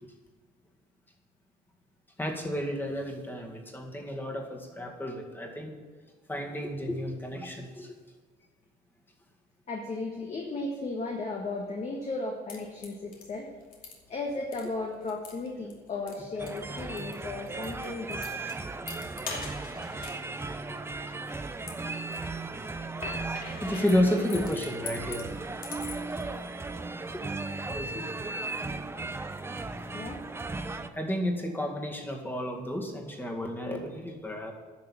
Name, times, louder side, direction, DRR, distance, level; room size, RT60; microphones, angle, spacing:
voice 1, 2.2-5.8 6.3-7.9 18.5-18.6 23.6-25.5 26.7-27.2 27.6-28.4 30.9-34.5, equal, 10° left, 2 dB, 2.1 m, -32 dB
voice 2, 9.7-13.5 14.1-18.4 29.9-30.2, left 3 dB, 40° left, 0 dB, 1.7 m, -35 dB
sound 1, 12.5-26.2, left 4 dB, 55° left, 2.5 m, -45 dB
sound 2, 16.4-30.9, right 3 dB, 15° right, 0.7 m, -36 dB
10.5 x 6.7 x 9.0 m, 1.5 s
cardioid pair, 110°, 17 cm